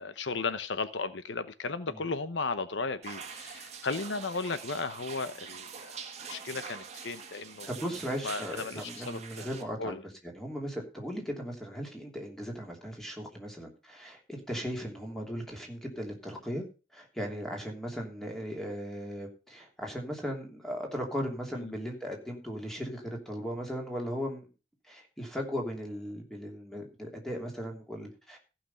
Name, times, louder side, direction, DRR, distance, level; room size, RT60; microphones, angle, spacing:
voice 1, 0.0-7.7 8.2-9.5 9.8-10.0 21.6-21.7, left 4 dB, 80° left, 0.9 m, -35 dB
sound 1, 3.0-9.6, right 6 dB, 35° right, 1.6 m, -44 dB
voice 2, 7.7-10.0 10.2-16.6 16.9-24.5 24.9-28.4, equal, ahead, 2.9 m, -37 dB
15.0 x 5.9 x 5.6 m
head